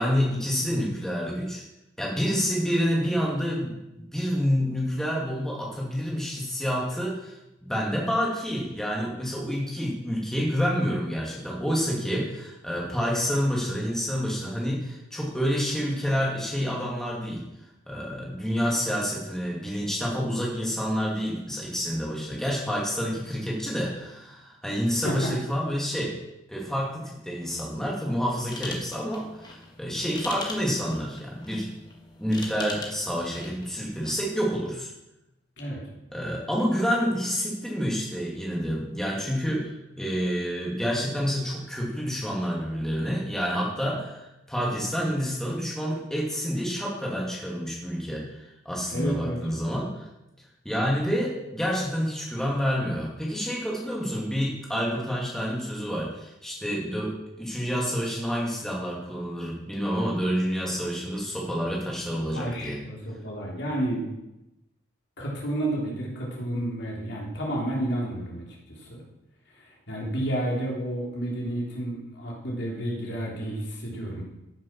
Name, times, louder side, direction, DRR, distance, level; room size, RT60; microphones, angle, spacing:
voice 1, 0.0-1.6 2.0-17.4 17.9-26.2 26.5-31.7 32.2-34.9 36.1-50.1 50.6-62.8, equal, ahead, -4 dB, 2.4 m, -28 dB
sound 1, 28.4-34.3, left 2 dB, 20° left, 1.6 m, -41 dB
voice 2, 35.6-35.9 48.9-49.4 62.3-64.1 65.2-69.0 69.5-74.2, right 1 dB, 60° left, -3 dB, 3.6 m, -31 dB
14.5 x 7.3 x 6.1 m, 0.92 s
head